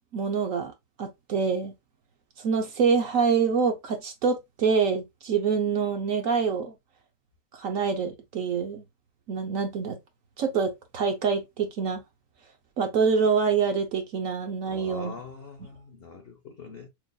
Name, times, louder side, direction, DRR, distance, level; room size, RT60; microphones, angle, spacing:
voice 1, 0.1-0.7 1.0-1.7 2.4-6.7 7.6-8.8 9.3-10.0 10.4-12.0 12.8-15.1, right 5 dB, 60° right, 1.0 m, -26 dB
voice 2, 14.7-16.9, left 5 dB, 65° left, 0.6 m, -43 dB
6.0 x 2.6 x 2.3 m
omnidirectional pair, 1.9 m